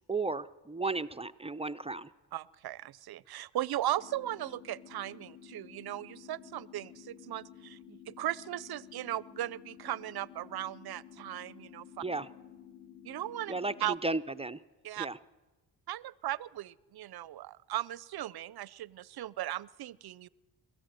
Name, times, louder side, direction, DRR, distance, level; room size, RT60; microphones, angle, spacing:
voice 1, 0.1-2.1 12.0-12.3 13.5-14.6 15.0-15.2, right 3 dB, 15° right, 12 dB, 0.6 m, -34 dB
voice 2, 2.3-12.0 13.0-14.0 14.8-15.1 15.9-20.3, right 13 dB, 60° right, 21 dB, 0.7 m, -37 dB
sound 1, 4.0-14.0, left 10 dB, 20° left, 2.3 m, -53 dB
22.0 x 14.5 x 9.2 m, 1.2 s
cardioid pair, 80°, 43 cm